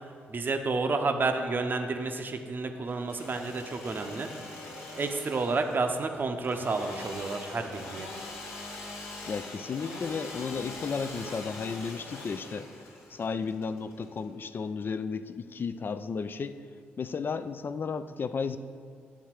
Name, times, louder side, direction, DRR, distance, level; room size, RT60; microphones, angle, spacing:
voice 1, 0.3-4.3 5.0-8.1, right 3 dB, 40° right, 6 dB, 0.7 m, -30 dB
Engine / Sawing, 2.9-14.6, left 2 dB, 70° left, 1.0 m, -43 dB
voice 2, 9.3-12.7 13.1-16.6 17.0-18.6, left 5 dB, 40° left, 12 dB, 0.4 m, -33 dB
10.0 x 3.6 x 4.5 m, 2.2 s
hypercardioid pair, 40°, 5 cm